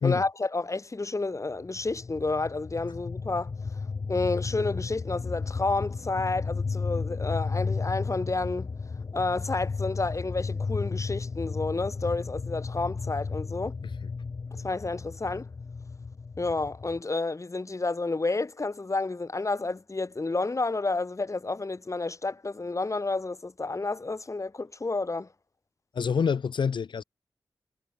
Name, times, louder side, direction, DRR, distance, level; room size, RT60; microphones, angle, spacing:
voice 1, 0.0-3.5 4.1-8.7 9.1-13.7 14.6-15.5 16.4-25.3, left 3 dB, 40° left, 1.8 m, -30 dB
sound 1, 1.6-17.0, left 4 dB, 60° left, 1.5 m, -34 dB
voice 2, 25.9-27.0, left 6 dB, 85° left, 1.2 m, -26 dB
cardioid pair, 45°, 8 cm